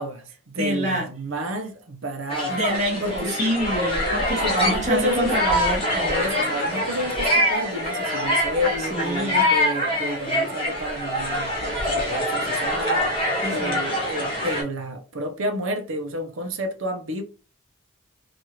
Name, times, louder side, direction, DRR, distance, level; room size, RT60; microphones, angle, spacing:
voice 1, 0.0-2.6 3.0-3.3 4.4-5.3 6.1-13.0 13.5-17.2, equal, 75° right, 0.6 m, -30 dB
voice 2, 0.5-1.1 2.5-6.2 8.8-9.5 13.4-13.8, right 1 dB, 35° right, 1.0 m, -27 dB
sound 1, 2.3-14.6, left 1 dB, 25° left, 1.0 m, -24 dB
3.0 x 2.5 x 2.8 m
head